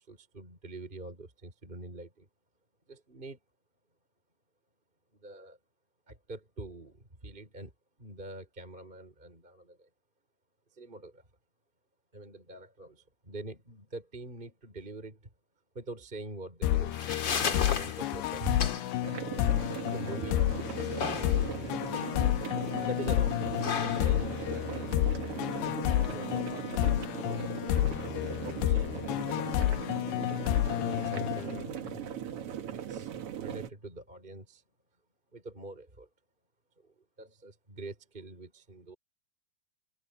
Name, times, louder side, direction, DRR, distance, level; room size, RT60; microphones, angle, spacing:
voice 1, 0.0-2.3 2.9-3.4 5.1-5.6 6.1-7.7 8.0-9.9 10.7-11.3 12.1-15.3 15.7-18.6 19.8-20.8 21.9-22.3 22.6-25.2 26.0-27.4 28.4-29.0 30.3-31.7 32.7-33.1 33.4-34.6 35.3-36.1 36.8-38.9, right 2 dB, 15° right, 3.5 m, -45 dB
sound 1, 16.6-32.1, left 13 dB, 90° left, 3.0 m, -30 dB
sound 2, 16.7-25.7, left 6 dB, 45° left, 1.6 m, -37 dB
sound 3, 19.0-33.7, right 10 dB, 65° right, 1.4 m, -39 dB
omnidirectional pair, 4.6 m